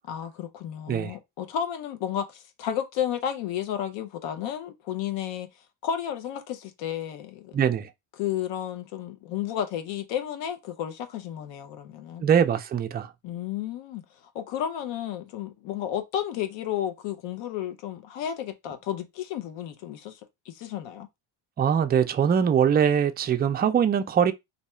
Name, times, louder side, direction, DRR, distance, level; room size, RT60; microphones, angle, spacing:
voice 1, 0.1-5.5 5.8-7.6 8.2-12.2 13.2-14.0 14.3-20.2 20.5-21.1, left 10 dB, 90° left, 0.8 m, -32 dB
voice 2, 7.5-7.9 12.2-13.1 21.6-24.3, right 8 dB, 25° right, 0.4 m, -22 dB
2.8 x 2.3 x 4.2 m
cardioid pair, 105°, 43 cm